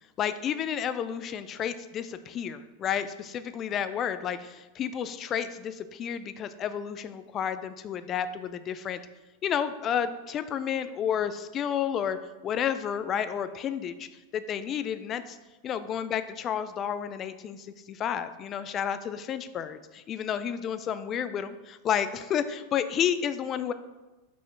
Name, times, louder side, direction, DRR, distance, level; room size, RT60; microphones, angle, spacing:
voice 1, 0.2-9.0 9.4-12.2 12.4-14.1 14.3-15.4 15.6-23.7, left 8 dB, 30° left, 12 dB, 0.4 m, -31 dB
5.7 x 5.0 x 5.7 m, 1.1 s
figure-of-eight pair, 90°, 0 cm